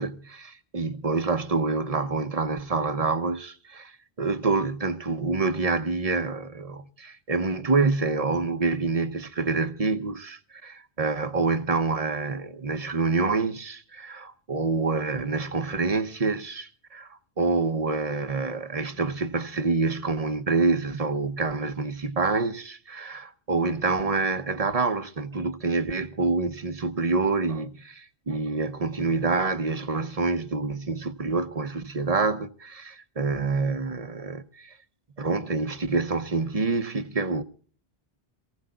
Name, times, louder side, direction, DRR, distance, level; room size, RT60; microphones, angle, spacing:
voice 1, 0.0-34.7 35.2-37.4, right 3 dB, 40° right, 0.8 m, -27 dB
27.0 x 16.5 x 2.3 m
omnidirectional pair, 1.0 m